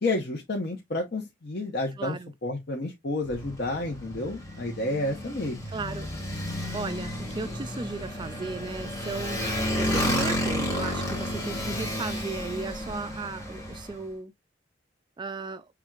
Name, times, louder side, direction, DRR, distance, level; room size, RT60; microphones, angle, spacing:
voice 1, 0.0-2.2 2.4-5.7, left 2 dB, 60° left, 0.9 m, -30 dB
voice 2, 2.0-2.3 5.7-6.1 6.7-9.4 9.7-14.3 15.2-15.7, right 3 dB, 25° right, 0.3 m, -35 dB
Motorcycle, 3.3-13.9, left 1 dB, 20° left, 1.9 m, -32 dB
5.8 x 3.5 x 2.4 m
head